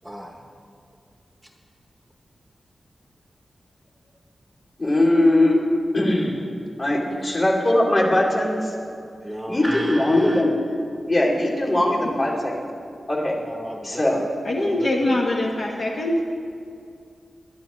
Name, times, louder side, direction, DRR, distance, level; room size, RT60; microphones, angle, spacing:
voice 1, 0.0-0.5 1.4-1.5 6.9-7.3 9.2-10.4 13.4-15.2, right 1 dB, 10° right, 1 dB, 0.9 m, -35 dB
voice 2, 4.8-5.6 5.9-6.4 6.8-8.7 9.5-10.5 11.1-12.6 13.1-13.4 13.8-14.2, left 1 dB, 40° left, -4 dB, 2.8 m, -20 dB
voice 3, 14.4-16.2, left 1 dB, 55° left, -2 dB, 1.2 m, -23 dB
21.0 x 11.0 x 3.1 m, 2.4 s
wide cardioid pair, 130°, 0 cm